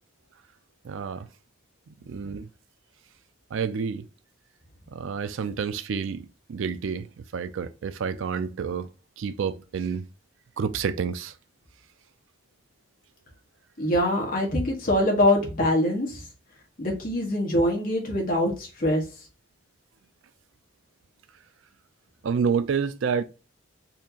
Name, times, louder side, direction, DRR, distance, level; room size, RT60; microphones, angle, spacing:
voice 1, 0.8-1.3 2.1-2.5 3.5-4.0 4.9-7.1 7.3-8.9 9.2-10.1 10.6-11.3 22.2-23.2, right 6 dB, 80° right, 0.4 m, -29 dB
voice 2, 13.8-16.2 16.8-19.0, left 1 dB, 45° left, 1.4 m, -24 dB
4.2 x 2.8 x 2.8 m
head